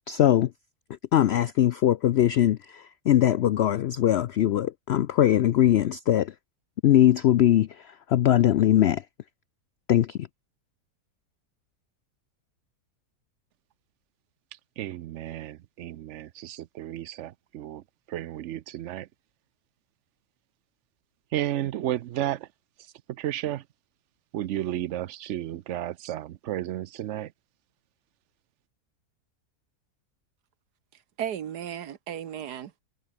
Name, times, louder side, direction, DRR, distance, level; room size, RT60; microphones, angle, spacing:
voice 1, 0.1-0.5 1.1-6.3 6.8-7.7 8.1-9.0 9.9-10.2, left 12 dB, 85° left, 0.5 m, -21 dB
voice 2, 14.8-17.8 18.1-19.1 21.3-22.5 23.1-23.6 24.3-27.3, right 13 dB, 65° right, 0.7 m, -32 dB
voice 3, 31.2-32.8, right 9 dB, 85° right, 1.7 m, -35 dB
omnidirectional pair, 1.7 m